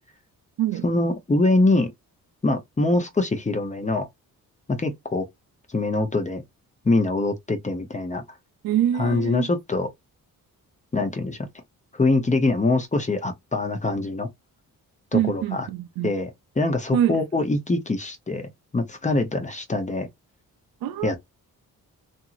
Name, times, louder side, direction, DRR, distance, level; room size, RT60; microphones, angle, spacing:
voice 1, 0.8-1.9 2.4-4.1 4.7-5.3 5.7-6.4 6.8-8.2 9.0-9.9 10.9-11.4 11.9-14.3 15.1-15.7 16.0-16.3 16.6-20.1 21.0-21.2, left 2 dB, 20° left, 0.7 m, -23 dB
voice 2, 8.6-9.5 15.1-16.1 16.9-17.2 20.8-21.2, right 10 dB, 90° right, 0.5 m, -24 dB
2.9 x 2.6 x 2.4 m
cardioid pair, 115°, 36 cm